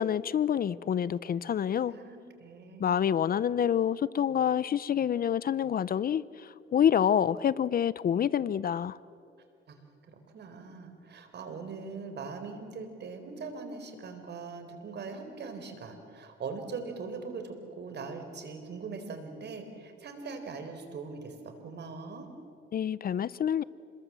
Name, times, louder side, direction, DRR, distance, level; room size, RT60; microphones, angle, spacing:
voice 1, 0.0-1.9 2.8-9.0 22.7-23.6, left 9 dB, 50° left, 19 dB, 0.6 m, -27 dB
voice 2, 1.8-2.8 9.7-22.3, right 4 dB, 60° right, 7 dB, 4.1 m, -41 dB
27.5 x 21.5 x 7.6 m, 2.5 s
cardioid pair, 90°, 20 cm